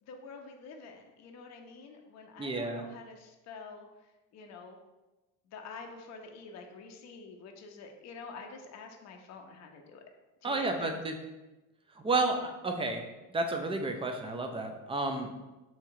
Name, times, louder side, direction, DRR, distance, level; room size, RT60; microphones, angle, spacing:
voice 1, 0.0-4.8 5.5-10.0 10.4-10.9, left 4 dB, 40° left, 3 dB, 0.6 m, -47 dB
voice 2, 2.4-2.8 10.4-11.2 12.0-13.0 13.3-15.3, right 2 dB, 15° right, 5 dB, 0.4 m, -31 dB
3.1 x 2.8 x 3.6 m, 1.1 s
hypercardioid pair, 70°, 44 cm